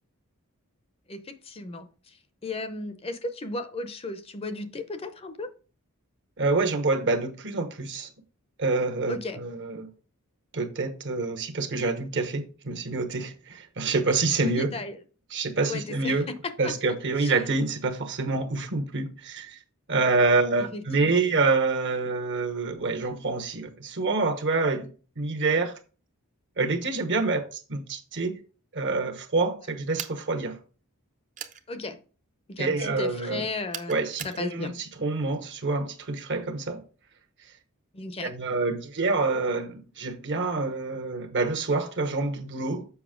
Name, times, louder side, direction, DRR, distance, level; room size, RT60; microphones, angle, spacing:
voice 1, 1.1-1.9 2.4-5.5 9.1-9.4 14.4-15.0 15.6-16.2 16.6-16.7 17.2-17.3 20.7-21.2 31.7-32.0 32.5-33.9 34.2-34.7 37.9-38.3, left 2 dB, 25° left, 0.6 m, -35 dB
voice 2, 6.4-8.1 8.6-9.9 10.5-14.8 15.3-16.3 16.6-19.6 19.9-25.7 26.6-28.4 28.7-30.6 32.6-33.4 33.9-36.8 38.2-42.9, right 3 dB, 55° right, 1.1 m, -27 dB
sound 1, 30.0-30.2 31.4-31.6 33.7-34.4, right 9 dB, 35° right, 0.6 m, -37 dB
7.0 x 5.4 x 3.7 m
head